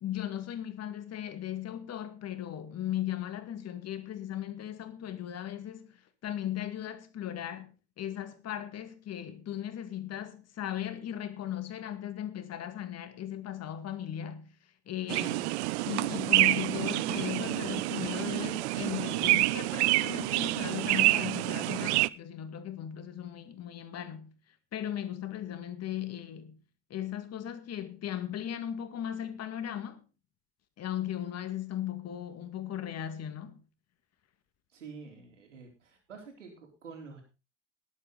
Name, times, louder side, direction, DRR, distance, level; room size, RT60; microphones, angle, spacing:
voice 1, 0.0-15.5 15.8-24.3 24.7-26.6 26.9-30.0 30.8-33.6, left 11 dB, 45° left, 2.2 m, -37 dB
sound 1, 15.1-22.1, right 20 dB, 65° right, 0.6 m, -28 dB
voice 2, 34.7-37.2, right 5 dB, 85° right, 4.2 m, -48 dB
19.5 x 8.4 x 4.0 m
figure-of-eight pair, 60°, 36 cm